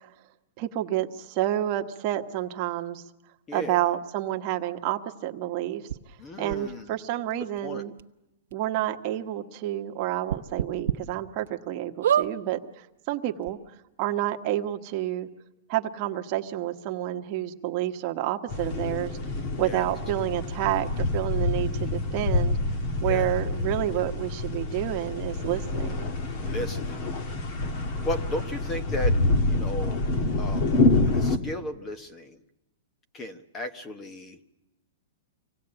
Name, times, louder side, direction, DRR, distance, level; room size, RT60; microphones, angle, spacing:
voice 1, 0.6-3.0 3.5-5.8 6.4-7.9 8.5-12.6 13.1-13.6 14.0-15.3 15.7-19.1 19.6-22.6 23.0-26.1, right 13 dB, 35° right, 4 dB, 1.2 m, -29 dB
voice 2, 3.5-3.8 6.2-6.9 7.6-7.8 19.6-19.9 23.0-23.3 26.4-27.0 27.9-29.2 29.5-30.0 30.4-30.8 31.1-32.4 33.1-34.4, left 1 dB, 15° left, 11 dB, 1.0 m, -35 dB
sound 1, 5.9-6.0 6.5-6.6 7.6-7.7 8.0-8.1 8.5-8.6 10.3-11.0 11.5-11.6 12.0-12.3 13.1-13.2 13.4-13.5, right 9 dB, 75° right, 1.0 m, -25 dB
sound 2, 18.5-31.4, left 2 dB, 35° left, 1.6 m, -27 dB
25.5 x 18.0 x 8.8 m, 0.95 s
supercardioid pair, 165°, 0 cm